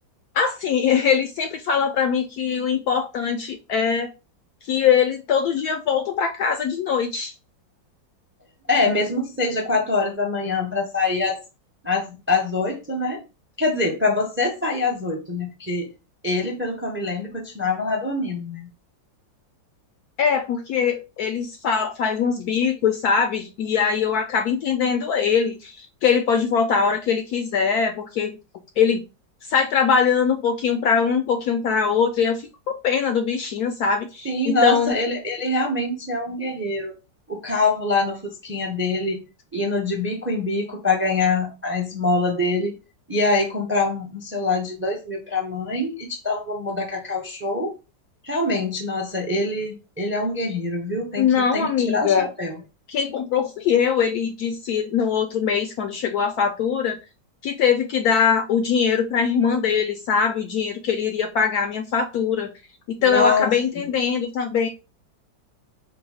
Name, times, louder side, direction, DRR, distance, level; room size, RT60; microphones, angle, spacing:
voice 1, 0.3-4.1 4.6-7.3 20.2-28.4 28.8-29.0 29.5-35.0 51.2-52.3 52.9-57.0 57.4-62.5 63.0-64.7, left 6 dB, 70° left, 0.9 m, -22 dB
voice 2, 8.7-11.4 11.8-13.2 13.6-15.9 16.2-18.7 34.2-36.9 37.3-39.2 39.5-42.8 43.1-47.7 48.2-52.6 63.0-63.5 63.8-63.9, left 3 dB, 15° right, 0.4 m, -24 dB
4.6 x 2.2 x 4.8 m
omnidirectional pair, 2.0 m